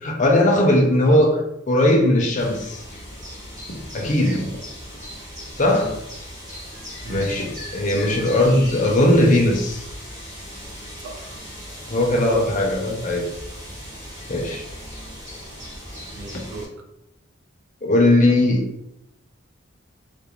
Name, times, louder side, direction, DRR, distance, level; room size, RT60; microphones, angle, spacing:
voice 1, 0.0-2.8 3.9-4.4 5.6-6.0 7.1-9.8 11.9-13.2 14.3-14.6 17.8-18.6, left 1 dB, 35° left, 1 dB, 0.5 m, -18 dB
sound 1, 2.4-16.7, equal, 40° right, 1.1 m, -38 dB
voice 2, 4.0-4.4 5.8-6.0 7.0-7.3 11.0-11.4 16.1-16.7, right 3 dB, 70° right, 2 dB, 0.5 m, -37 dB
2.4 x 2.1 x 2.9 m, 0.81 s
head